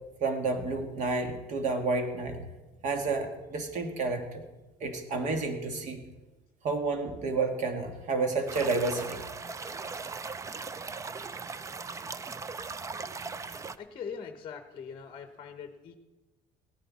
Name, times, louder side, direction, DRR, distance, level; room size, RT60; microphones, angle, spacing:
voice 1, 0.2-2.5 2.8-4.5 4.8-6.0 6.6-9.2, right 3 dB, 50° right, 5 dB, 1.8 m, -30 dB
sound 1, 8.5-13.8, right 4 dB, 20° right, 0.4 m, -38 dB
voice 2, 13.8-16.0, left 6 dB, 35° left, 7 dB, 0.9 m, -42 dB
17.0 x 9.8 x 4.2 m, 1.1 s
cardioid pair, 125°, 16 cm